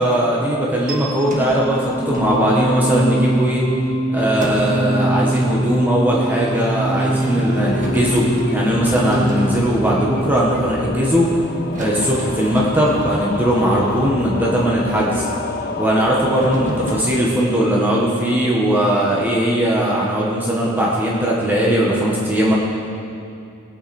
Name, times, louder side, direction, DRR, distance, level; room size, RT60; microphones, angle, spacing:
voice 1, 0.0-3.6 4.1-11.3 11.7-15.3 15.8-22.5, right 1 dB, 10° right, -5 dB, 1.4 m, -19 dB
sound 1, 0.9-11.8, right 1 dB, 85° right, 3.8 m, -24 dB
sound 2, 1.1-17.3, equal, 35° right, 1.8 m, -32 dB
sound 3, 7.5-17.0, left 3 dB, 45° left, 0.7 m, -29 dB
20.5 x 9.3 x 4.4 m, 2.6 s
head